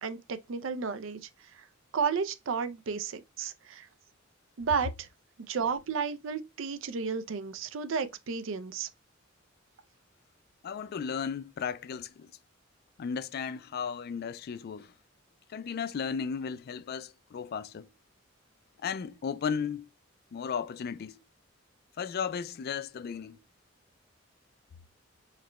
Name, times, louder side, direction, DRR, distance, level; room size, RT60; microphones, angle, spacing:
voice 1, 0.0-1.7 1.9-3.9 4.6-5.1 5.5-8.9, right 5 dB, 70° right, 0.5 m, -33 dB
voice 2, 10.6-12.3 13.0-14.9 15.5-17.9 18.8-19.9 20.3-21.2 22.0-23.4, left 6 dB, 50° left, 0.3 m, -35 dB
4.8 x 2.2 x 2.9 m
head